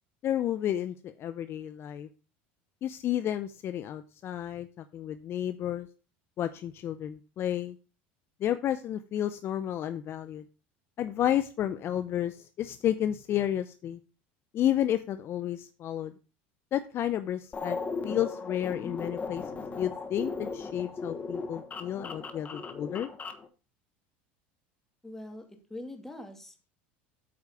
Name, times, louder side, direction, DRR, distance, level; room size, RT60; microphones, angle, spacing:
voice 1, 0.2-2.1 2.8-5.9 6.4-7.8 8.4-10.4 11.0-14.0 14.5-16.1 16.7-17.8 18.0-19.4 19.8-23.1, left 11 dB, 45° left, 11 dB, 0.6 m, -31 dB
sound 1, 17.5-23.5, left 4 dB, 25° left, 1.2 m, -37 dB
voice 2, 25.0-25.4 25.7-26.7, left 1 dB, 5° left, 4 dB, 2.3 m, -43 dB
8.6 x 4.7 x 6.7 m, 0.35 s
supercardioid pair, 95°, 6 cm